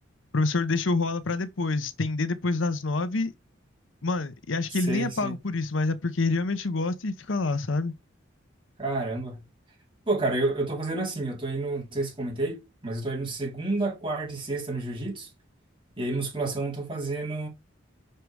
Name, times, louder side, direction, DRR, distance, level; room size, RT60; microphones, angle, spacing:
voice 1, 0.3-3.3 4.0-7.9, left 3 dB, 75° left, 0.8 m, -27 dB
voice 2, 4.7-5.4 8.8-9.4 10.1-15.3 16.0-17.5, right 2 dB, 25° right, 3.6 m, -30 dB
6.6 x 4.6 x 4.7 m
head